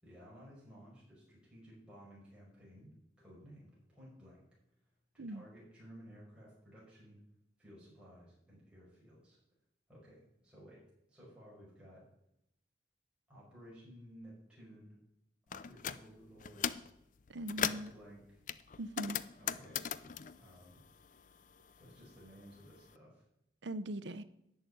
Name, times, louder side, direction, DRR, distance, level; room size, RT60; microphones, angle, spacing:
voice 1, 0.0-4.5 5.1-7.2 7.6-9.4 9.9-12.1 13.3-15.0 15.5-16.8 17.6-18.4 19.4-19.9 20.4-20.8 21.7-23.2, equal, 5° right, 5.4 m, -56 dB
sound 1, 15.5-16.0 16.4-16.9 17.3-17.9 18.5-21.4 21.7-22.8, left 8 dB, 45° left, 0.5 m, -39 dB
voice 2, 17.3-17.9 18.8-19.2 23.6-24.2, right 1 dB, 90° right, 0.8 m, -40 dB
11.0 x 6.9 x 9.3 m
head